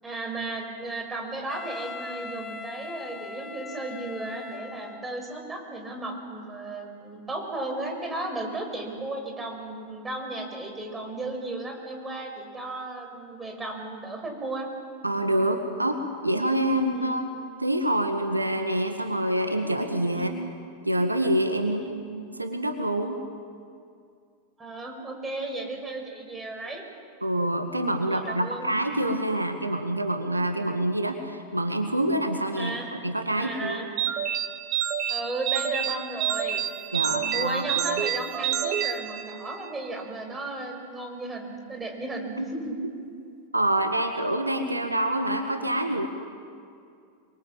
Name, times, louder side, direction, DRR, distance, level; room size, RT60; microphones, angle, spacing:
voice 1, 0.0-14.7 16.9-17.2 20.1-20.4 21.6-21.9 24.6-26.8 28.1-28.7 32.6-32.9 33.4-33.9 35.1-36.6 37.0-42.7, right 2 dB, 15° right, 2 dB, 6.0 m, -35 dB
Wind instrument woodwind instrument, 1.5-5.3, left 4 dB, 20° left, 1.0 m, -40 dB
voice 2, 15.0-17.3 17.6-20.3 20.8-21.8 22.1-23.2 27.2-32.8 33.0-33.8 36.9-37.8 42.4-42.5 43.5-46.1, right 1 dB, 85° right, 6 dB, 1.9 m, -26 dB
sound 1, 34.0-39.7, right 10 dB, 35° right, 2.1 m, -28 dB
27.5 x 23.0 x 7.6 m, 2.4 s
figure-of-eight pair, 90°, 0 cm